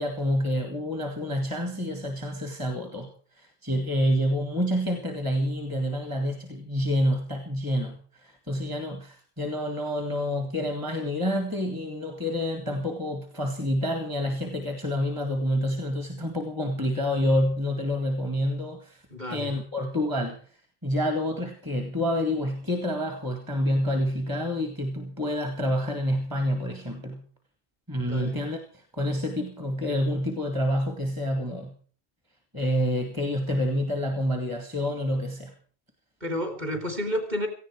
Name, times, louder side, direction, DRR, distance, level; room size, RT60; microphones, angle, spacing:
voice 1, 0.0-3.1 3.4-19.0 19.3-20.4 20.8-27.2 27.9-31.7 32.5-35.5, equal, 15° right, 4 dB, 2.1 m, -28 dB
voice 2, 19.1-19.5 28.1-28.4 36.2-37.5, equal, 35° right, 5 dB, 3.6 m, -30 dB
18.0 x 15.0 x 4.8 m, 0.43 s
omnidirectional pair, 1.3 m